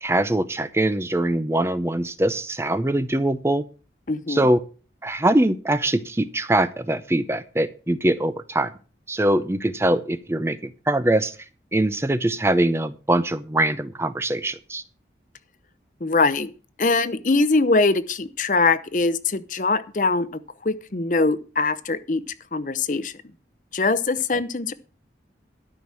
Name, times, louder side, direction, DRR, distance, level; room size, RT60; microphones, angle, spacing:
voice 1, 0.0-3.6 4.3-4.6 5.0-8.7 9.1-11.4 11.7-14.8, right 1 dB, 15° right, 13 dB, 0.5 m, -22 dB
voice 2, 4.1-4.5 16.0-16.5 16.8-20.3 20.6-22.2 22.5-23.1 23.7-24.7, left 3 dB, 45° left, 15 dB, 0.7 m, -22 dB
12.5 x 6.0 x 7.4 m, 0.37 s
head